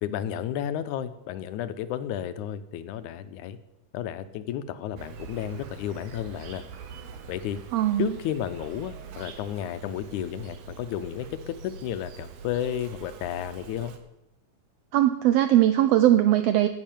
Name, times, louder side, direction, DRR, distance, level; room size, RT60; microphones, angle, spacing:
voice 1, 0.0-3.6 3.9-6.6 7.3-7.6 8.0-13.9, left 10 dB, 90° left, 13 dB, 2.2 m, -32 dB
Insect, 5.0-14.0, right 6 dB, 65° right, 2.0 m, -44 dB
voice 2, 7.7-8.1 14.9-16.7, right 12 dB, 85° right, 10 dB, 1.4 m, -20 dB
9.9 x 7.0 x 9.1 m, 0.94 s
omnidirectional pair, 3.4 m